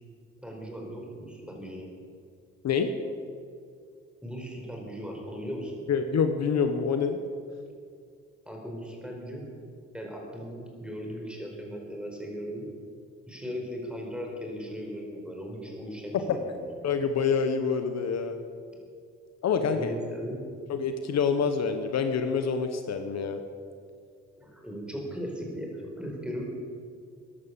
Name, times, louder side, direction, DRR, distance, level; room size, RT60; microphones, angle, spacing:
voice 1, 0.4-1.9 4.2-5.8 8.5-9.4 9.9-12.6 13.3-16.6 19.7-20.4 24.4-26.4, equal, 5° right, 0 dB, 4.4 m, -37 dB
voice 2, 5.9-7.2 16.8-18.4 19.4-19.9 20.7-23.4, left 6 dB, 60° left, 7 dB, 1.1 m, -26 dB
14.5 x 11.0 x 7.1 m, 2.3 s
cardioid pair, 90°, 30 cm